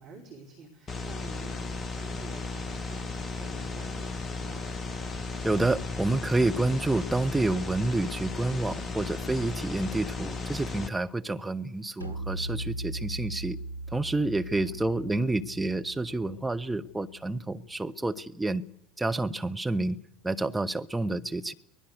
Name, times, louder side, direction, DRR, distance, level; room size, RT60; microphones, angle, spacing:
voice 1, 0.0-4.6 14.5-15.0, right 3 dB, 50° right, 4.8 m, -49 dB
sound 1, 0.9-10.9, left 3 dB, 30° left, 1.2 m, -35 dB
voice 2, 5.4-13.6 13.9-18.6 19.0-20.0 20.2-21.5, right 2 dB, 10° right, 1.1 m, -29 dB
sound 2, 12.0-17.4, right 1 dB, 85° left, 0.7 m, -39 dB
23.5 x 19.0 x 6.7 m
figure-of-eight pair, 65°, 0 cm